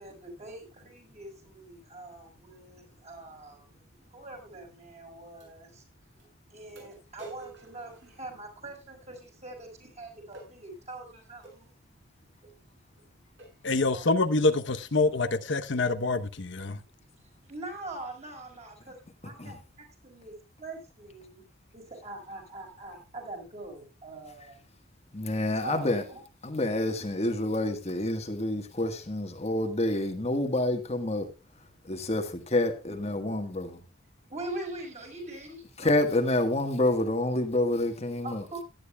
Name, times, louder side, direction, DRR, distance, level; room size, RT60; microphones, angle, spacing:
voice 1, 0.0-6.2 6.4-11.7 13.3-14.1 16.6-21.4 21.7-24.6 25.4-26.2 34.3-35.9 38.2-38.6, right 2 dB, 35° right, 5.2 m, -43 dB
sound 1, 4.4-4.5 5.4-5.5 6.2-6.3 6.8-8.7 10.3-10.6 11.4-11.6 12.4-12.6 13.0-13.1 13.4-13.7 14.2-14.5, right 3 dB, 60° right, 7.7 m, -50 dB
voice 2, 13.6-16.8, left 3 dB, 60° left, 0.9 m, -26 dB
voice 3, 25.1-26.0 26.4-31.3 31.8-33.7 35.8-38.4, left 1 dB, 30° left, 1.5 m, -28 dB
17.0 x 10.5 x 2.3 m
head